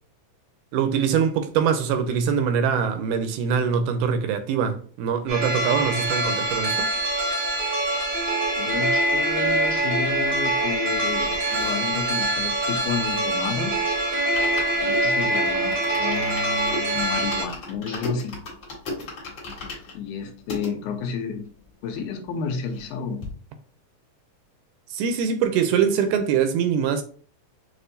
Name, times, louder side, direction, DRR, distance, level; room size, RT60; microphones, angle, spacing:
voice 1, 0.7-6.9 24.9-27.0, right 7 dB, 85° right, 2.0 m, -23 dB
sound 1, 5.3-17.4, right 1 dB, 60° right, 0.8 m, -24 dB
voice 2, 8.6-13.9 14.8-18.4 19.9-21.5 21.8-23.2, left 5 dB, 80° left, 2.0 m, -31 dB
sound 2, 8.9-9.2 9.7-10.0 11.2-11.5 12.2-12.5 13.9-14.2 15.0-15.3 16.0-16.3 17.9-18.3, left 1 dB, 20° right, 0.8 m, -44 dB
sound 3, 10.7-13.5 13.8-13.9 14.2-20.7 21.3-21.4 21.6-21.7 22.0-22.9 23.2-23.3, left 2 dB, 50° left, 1.5 m, -37 dB
6.1 x 2.6 x 2.6 m
omnidirectional pair, 3.7 m